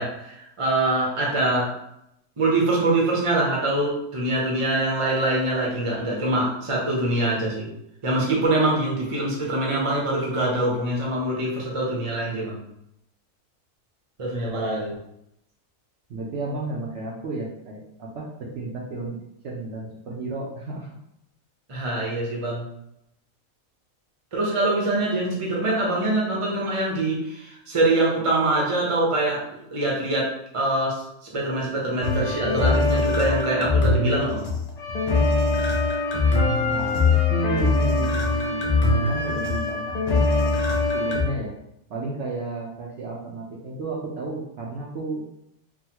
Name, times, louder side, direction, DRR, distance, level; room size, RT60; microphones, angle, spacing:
voice 1, 0.0-1.7 2.4-7.7 8.0-12.6 14.2-15.0 21.7-22.7 24.3-29.4 29.7-31.0 31.3-34.4, right 2 dB, 30° right, -3 dB, 0.7 m, -24 dB
voice 2, 14.4-14.9 16.1-20.9 36.6-41.5 41.9-45.2, right 2 dB, 65° right, -3 dB, 0.9 m, -33 dB
sound 1, 32.0-41.2, left 3 dB, 50° left, 0.5 m, -22 dB
3.8 x 2.1 x 2.9 m, 0.80 s
omnidirectional pair, 1.4 m